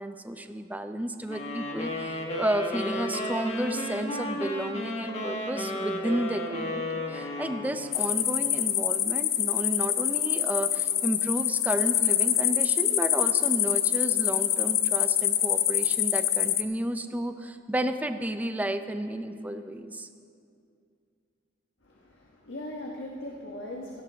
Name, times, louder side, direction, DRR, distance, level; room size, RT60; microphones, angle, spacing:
voice 1, 0.0-20.1, right 1 dB, 10° right, 8 dB, 0.5 m, -32 dB
sound 1, 1.3-8.1, left 1 dB, 35° left, 1.4 m, -33 dB
sound 2, 7.9-16.6, left 11 dB, 55° left, 0.6 m, -25 dB
voice 2, 21.8-24.0, left 1 dB, 85° left, -2 dB, 1.4 m, -39 dB
17.0 x 15.5 x 3.5 m, 2.4 s
head